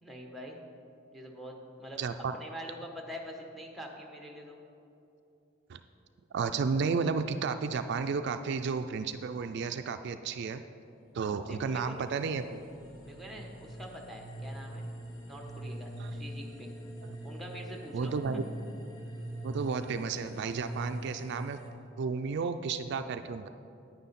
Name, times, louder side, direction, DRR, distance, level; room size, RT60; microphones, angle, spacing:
voice 1, 0.0-0.6 1.1-2.0 2.3-4.6 11.5-12.0 13.0-14.9 15.3-16.8 17.2-18.5, equal, ahead, 1 dB, 1.2 m, -45 dB
voice 2, 2.0-2.4 5.7-5.8 6.3-10.6 11.1-12.6 16.0-16.2 17.1-17.2 17.9-18.4 19.4-21.6 22.0-23.5, right 5 dB, 60° right, 9 dB, 0.3 m, -32 dB
sound 1, 11.0-21.7, right 1 dB, 75° left, 1.4 m, -43 dB
9.7 x 9.5 x 4.2 m, 2.7 s
head